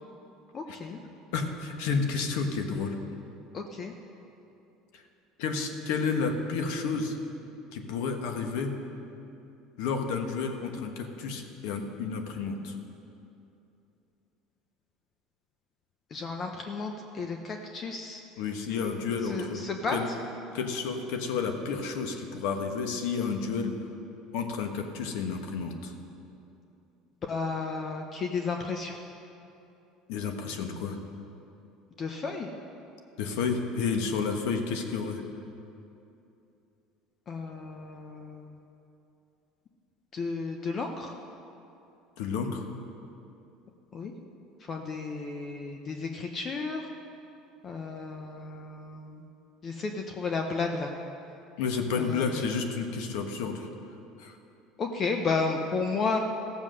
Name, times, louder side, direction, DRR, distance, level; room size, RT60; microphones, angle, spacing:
voice 1, 0.5-1.0 3.5-3.9 16.1-16.9 17.2-18.2 19.3-20.0 27.3-29.0 32.0-32.5 37.3-38.4 40.1-41.1 43.9-44.1 44.7-46.8 47.6-49.2 49.6-50.9 52.0-52.2 54.8-56.2, left 4 dB, 35° left, 3 dB, 0.8 m, -32 dB
voice 2, 1.3-2.9 4.9-5.0 5.4-7.2 7.7-8.7 9.8-12.7 18.4-19.6 19.9-20.1 20.5-23.7 24.3-25.9 30.1-31.0 33.2-35.2 42.2-42.7 51.6-53.7 54.2-54.4, left 5 dB, 80° left, 5 dB, 1.3 m, -31 dB
15.0 x 7.3 x 6.4 m, 2.8 s
supercardioid pair, 120°, 0 cm